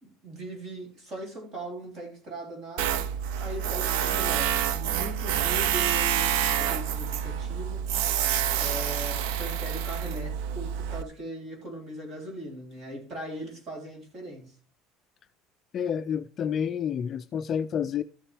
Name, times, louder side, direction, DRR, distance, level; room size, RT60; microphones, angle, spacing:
voice 1, 0.0-2.9 3.3-7.8 8.6-14.4, right 1 dB, 35° right, 3.5 m, -39 dB
Tools, 2.8-11.0, right 9 dB, 80° right, 0.7 m, -27 dB
voice 2, 15.7-18.0, left 8 dB, 30° left, 0.4 m, -29 dB
13.5 x 7.1 x 3.3 m
cardioid pair, 170°, 0 cm